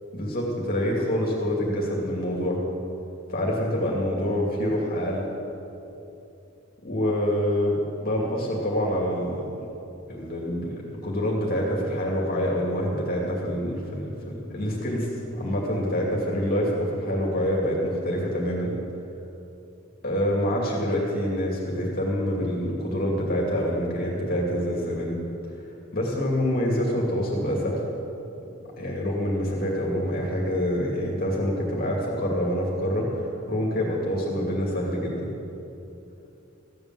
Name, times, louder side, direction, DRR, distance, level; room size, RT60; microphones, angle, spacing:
voice 1, 0.1-2.6 3.3-5.2 6.8-9.6 10.1-18.7 20.0-25.2 25.9-27.8 28.8-33.2 33.5-35.3, equal, 45° left, -3 dB, 2.5 m, -26 dB
15.0 x 8.9 x 7.7 m, 2.9 s
head